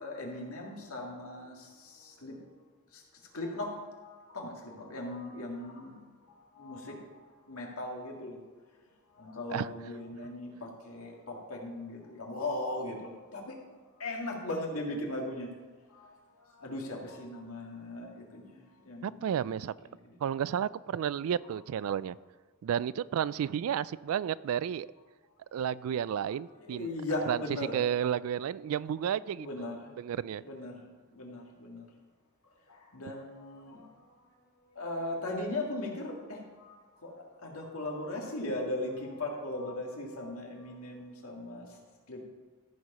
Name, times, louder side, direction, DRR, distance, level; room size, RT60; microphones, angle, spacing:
voice 1, 0.0-2.4 2.9-3.0 3.3-6.0 6.3-7.2 7.5-8.4 9.1-13.6 14.0-15.5 15.9-16.1 16.5-18.5 18.8-19.3 20.0-20.1 26.6-27.8 29.4-29.9 30.4-30.8 31.1-31.9 32.7-34.3 34.7-41.8 42.1-42.2, left 1 dB, 80° left, 0 dB, 2.0 m, -38 dB
voice 2, 19.0-19.7 20.2-22.2 22.6-24.9 25.5-26.9 27.3-27.4 27.7-30.4, right 9 dB, 75° right, 18 dB, 0.3 m, -32 dB
14.0 x 4.8 x 5.5 m, 1.3 s
head